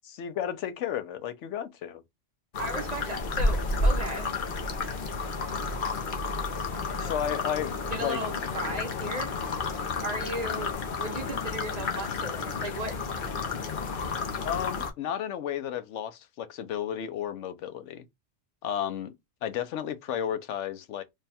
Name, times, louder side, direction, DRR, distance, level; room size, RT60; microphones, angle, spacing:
voice 1, 0.2-2.0 6.9-7.7 8.0-8.2 14.4-18.0 18.6-19.1 19.4-21.0, left 9 dB, 80° left, 0.9 m, -33 dB
sound 1, 2.5-14.9, left 3 dB, 50° left, 0.8 m, -31 dB
voice 2, 2.6-4.3 6.7-7.5 7.9-9.6 10.0-10.7 11.0-13.0 14.0-14.1, right 1 dB, 40° right, 0.7 m, -36 dB
3.3 x 2.2 x 4.1 m
omnidirectional pair, 1.2 m